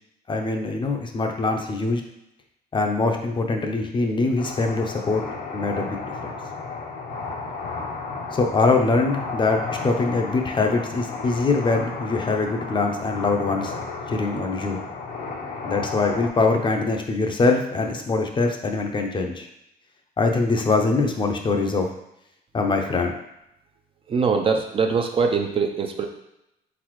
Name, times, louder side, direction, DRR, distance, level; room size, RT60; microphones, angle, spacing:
voice 1, 0.3-2.0 2.7-5.2 5.5-6.0 6.2-6.3 8.3-13.7 14.1-14.8 15.6-19.5 20.2-21.9 22.5-23.1, left 3 dB, 30° left, 3 dB, 0.6 m, -23 dB
sound 1, 4.4-16.3, left 4 dB, 70° left, 0.9 m, -33 dB
voice 2, 24.1-26.1, right 5 dB, 35° right, 4 dB, 0.5 m, -22 dB
4.1 x 4.0 x 3.1 m, 0.83 s
cardioid pair, 110°, 17 cm